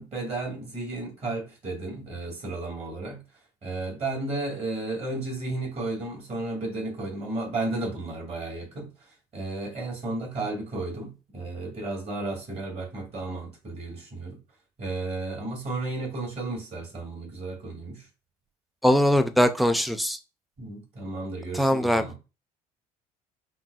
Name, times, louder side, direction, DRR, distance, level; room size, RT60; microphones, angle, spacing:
voice 1, 0.0-3.2 3.6-8.9 9.3-14.4 14.8-18.0 20.6-22.2, right 2 dB, 45° right, 2.4 m, -33 dB
voice 2, 18.8-20.2 21.5-22.0, equal, ahead, 0.4 m, -21 dB
5.5 x 2.7 x 2.4 m
cardioid pair, 100°, 16 cm